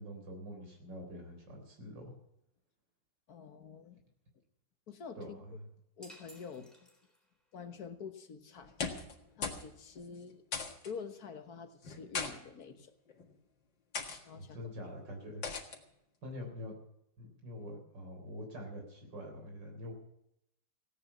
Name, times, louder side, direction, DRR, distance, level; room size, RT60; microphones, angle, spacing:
voice 1, 0.0-2.1 5.2-5.7 14.3-15.4 16.2-16.7 17.2-19.9, left 1 dB, 75° right, 2 dB, 4.5 m, -45 dB
voice 2, 3.3-4.0 4.9-5.4 6.0-6.7 7.5-8.7 9.4-10.4 10.8-12.9 14.3-14.6, left 6 dB, 60° left, 8 dB, 1.6 m, -47 dB
sound 1, 6.0-7.5, equal, ahead, 3.5 m, -57 dB
sound 2, 8.6-9.2 9.4-9.7 10.0-10.1 10.5-10.9 11.8-12.3 13.1-13.3 13.9-14.2 15.4-15.8, left 5 dB, 85° left, 2.5 m, -38 dB
16.5 x 9.4 x 7.1 m, 0.80 s
omnidirectional pair, 1.9 m